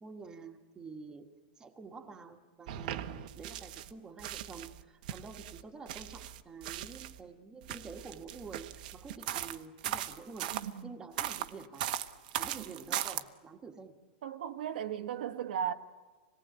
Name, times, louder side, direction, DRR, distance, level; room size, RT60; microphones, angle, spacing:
voice 1, 0.0-1.3 1.6-10.6 10.8-11.9 12.3-13.9, right 4 dB, 15° right, 1.6 m, -48 dB
sound 1, 2.7-3.9 4.2-7.2 7.6-10.7 11.2-13.2, right 12 dB, 60° right, 1.1 m, -39 dB
voice 2, 10.5-11.0 14.2-15.7, right 9 dB, 80° right, 1.3 m, -36 dB
26.5 x 19.0 x 9.2 m
supercardioid pair, 160°, 5 cm